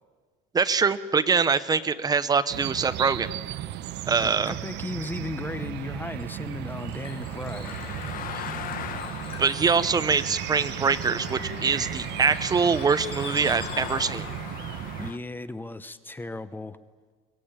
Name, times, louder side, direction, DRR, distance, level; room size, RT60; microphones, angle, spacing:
voice 1, 0.5-3.3 4.1-4.5 8.3-8.4 9.4-14.3, right 5 dB, 20° right, 13 dB, 0.9 m, -24 dB
sound 1, 2.5-15.1, right 13 dB, 60° right, 0.9 m, -35 dB
voice 2, 4.2-7.7 14.7-16.8, left 2 dB, 10° left, 13 dB, 0.8 m, -36 dB
Bird / Water, 6.1-14.5, left 3 dB, 30° left, 7.4 m, -45 dB
sound 2, 7.6-15.2, left 10 dB, 45° left, 1.4 m, -39 dB
23.5 x 19.0 x 8.9 m, 1.5 s
cardioid pair, 145°, 20 cm